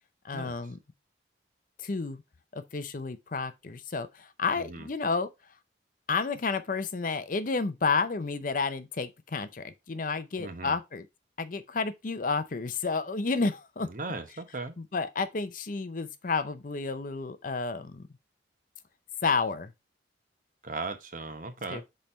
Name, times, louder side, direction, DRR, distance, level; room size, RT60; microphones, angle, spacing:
voice 1, 0.2-0.8 1.8-2.2 2.5-5.3 6.1-11.1 11.4-13.9 14.8-18.1 19.2-19.7 21.7-21.8, left 4 dB, 45° left, 0.6 m, -31 dB
voice 2, 4.6-4.9 10.4-10.8 13.8-14.7 20.6-21.8, right 3 dB, 45° right, 1.0 m, -37 dB
5.4 x 4.4 x 4.3 m
head